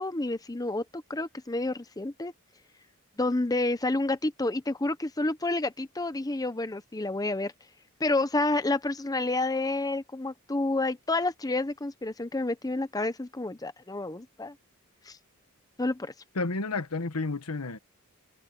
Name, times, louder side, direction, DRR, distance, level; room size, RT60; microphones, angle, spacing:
voice 1, 0.0-2.3 3.2-7.5 8.0-14.5 15.1-15.2 15.8-16.1, left 2 dB, 15° left, 0.7 m, -29 dB
voice 2, 16.3-17.8, left 3 dB, 90° left, 1.3 m, -31 dB
head